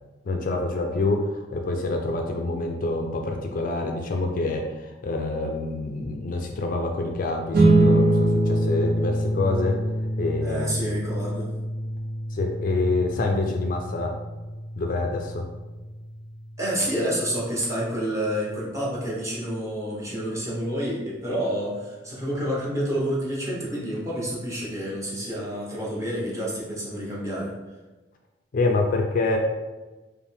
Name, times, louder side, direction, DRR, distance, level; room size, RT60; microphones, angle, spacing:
voice 1, 0.2-9.8 10.2-10.9 12.3-14.1 14.8-15.5 28.5-29.4, left 2 dB, 50° left, 3 dB, 0.4 m, -26 dB
sound 1, 7.5-18.3, right 2 dB, 60° right, 0.6 m, -25 dB
voice 2, 10.4-11.5 16.6-27.5, equal, 20° right, -6 dB, 1.1 m, -29 dB
5.2 x 2.2 x 3.4 m, 1.2 s
head